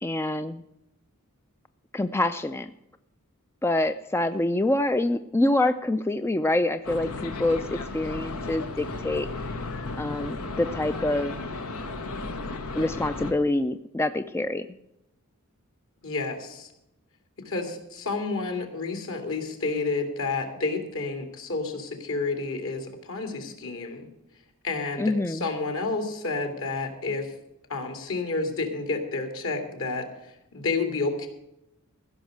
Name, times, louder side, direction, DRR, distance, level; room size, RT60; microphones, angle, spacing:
voice 1, 0.0-0.6 1.9-2.7 3.6-9.3 10.0-11.4 12.7-14.7 25.0-25.5, left 2 dB, 10° left, 10 dB, 0.4 m, -26 dB
sound 1, 6.8-13.3, left 3 dB, 85° left, 1.4 m, -34 dB
voice 2, 16.0-16.7 17.4-24.1 24.6-27.3 27.7-31.3, left 3 dB, 65° left, 4 dB, 2.5 m, -30 dB
15.5 x 6.4 x 7.9 m, 0.84 s
head